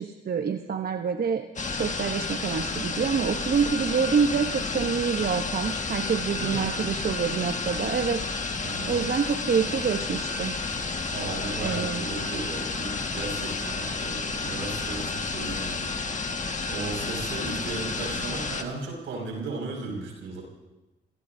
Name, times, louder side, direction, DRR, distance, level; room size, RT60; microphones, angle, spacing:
voice 1, 0.0-8.6 8.9-10.5 11.6-12.1, right 6 dB, 55° right, 6 dB, 0.9 m, -27 dB
sound 1, 1.6-18.6, left 4 dB, 40° left, 1.7 m, -31 dB
voice 2, 6.4-6.7 8.6-9.0 11.1-15.9 16.7-20.4, right 3 dB, 80° right, 0 dB, 5.8 m, -35 dB
29.0 x 18.5 x 2.7 m, 1.0 s
supercardioid pair, 50°, 19 cm